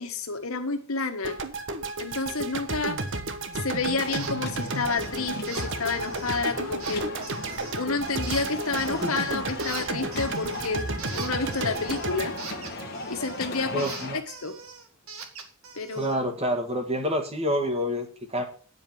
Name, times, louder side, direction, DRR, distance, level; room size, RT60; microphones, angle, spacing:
voice 1, 0.0-1.4 2.0-3.0 3.5-7.1 7.7-10.8 11.1-12.3 13.1-13.9 14.4-14.6 15.7-16.2, left 4 dB, 75° left, 6 dB, 1.5 m, -29 dB
sound 1, 1.2-13.5, right 2 dB, 55° right, 1.1 m, -33 dB
sound 2, 4.0-14.2, left 2 dB, 45° left, 1.4 m, -38 dB
sound 3, 4.1-4.3 4.6-5.1 5.5-6.4 6.8-7.8 8.2-9.3 9.6-13.4 13.8-16.2, right 5 dB, 75° right, 1.7 m, -41 dB
voice 2, 13.7-14.2 15.9-18.4, equal, 25° right, 4 dB, 1.8 m, -28 dB
9.7 x 5.2 x 7.7 m, 0.40 s
head